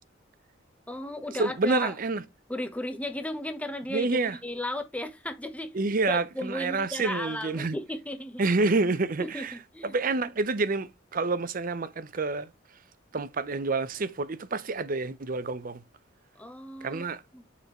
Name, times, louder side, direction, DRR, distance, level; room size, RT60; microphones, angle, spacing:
voice 1, 0.9-1.9 2.5-5.7 6.1-8.4 9.2-9.5 9.7-10.0 16.4-17.0 17.3-17.4, left 1 dB, 5° left, 0.9 m, -35 dB
voice 2, 1.4-2.2 3.9-4.4 5.7-7.8 8.4-9.5 9.8-12.5 13.1-15.8 16.8-17.2, right 3 dB, 45° right, 0.6 m, -28 dB
6.8 x 4.9 x 3.0 m
head